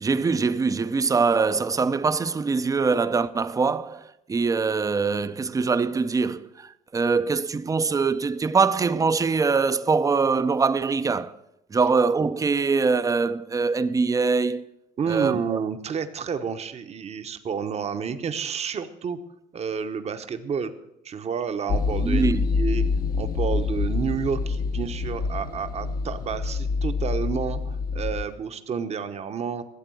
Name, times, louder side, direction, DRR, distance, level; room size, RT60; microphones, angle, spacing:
voice 1, 0.0-11.4 11.7-14.7 15.1-15.6 22.0-22.4, right 4 dB, 20° right, 0.5 m, -23 dB
voice 2, 15.0-19.2 19.5-20.7 21.0-22.8 23.2-29.6, right 6 dB, 40° right, 0.9 m, -30 dB
sound 1, 21.7-28.2, left 4 dB, 60° left, 1.0 m, -26 dB
13.0 x 8.0 x 7.7 m
cardioid pair, 110°, 17 cm